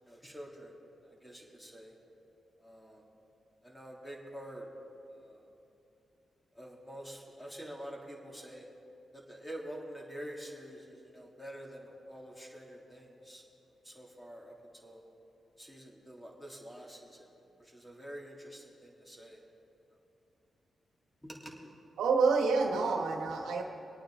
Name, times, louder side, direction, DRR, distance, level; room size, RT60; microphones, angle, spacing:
voice 1, 0.0-1.9 2.6-3.0 3.6-4.7 5.1-5.5 6.5-8.7 9.1-13.4 13.8-14.5 14.8-15.0 15.6-17.3 17.6-19.4 21.2-21.7, equal, 10° left, -3 dB, 3.2 m, -47 dB
voice 2, 22.0-23.6, right 4 dB, 85° right, 2 dB, 1.5 m, -28 dB
24.0 x 9.1 x 3.8 m, 2.8 s
supercardioid pair, 50°, 0 cm